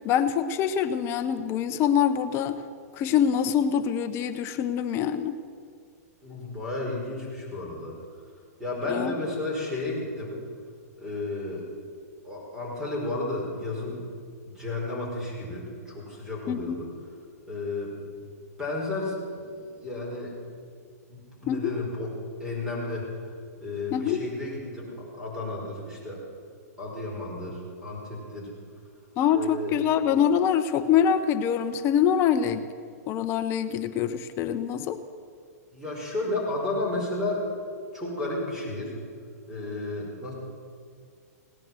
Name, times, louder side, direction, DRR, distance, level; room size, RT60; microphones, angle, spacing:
voice 1, 0.0-2.6 2.9-5.4 8.9-9.1 16.5-16.8 21.5-21.7 23.9-24.2 29.2-32.7 33.1-35.0, left 8 dB, 30° left, 10 dB, 0.7 m, -24 dB
voice 2, 6.2-8.0 8.6-10.3 11.0-11.6 12.2-14.0 14.5-16.9 17.5-18.3 18.6-20.3 21.1-22.1 22.4-23.1 23.6-26.2 26.8-28.5 29.3-29.7 35.7-37.4 37.9-39.0 39.5-40.3, left 2 dB, 5° right, -4 dB, 5.2 m, -32 dB
17.5 x 10.5 x 7.7 m, 2.1 s
hypercardioid pair, 145°, 9 cm